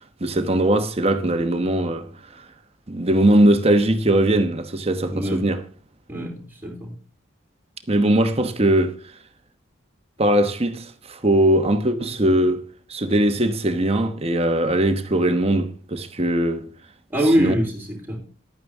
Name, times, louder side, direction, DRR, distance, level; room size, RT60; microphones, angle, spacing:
voice 1, 0.2-2.1 2.9-5.6 7.9-9.0 10.2-16.7 17.4-17.6, right 1 dB, 30° right, 1.1 m, -20 dB
voice 2, 5.1-5.4 6.1-6.9 17.1-18.2, equal, 10° right, 3.6 m, -23 dB
11.5 x 9.1 x 3.6 m
head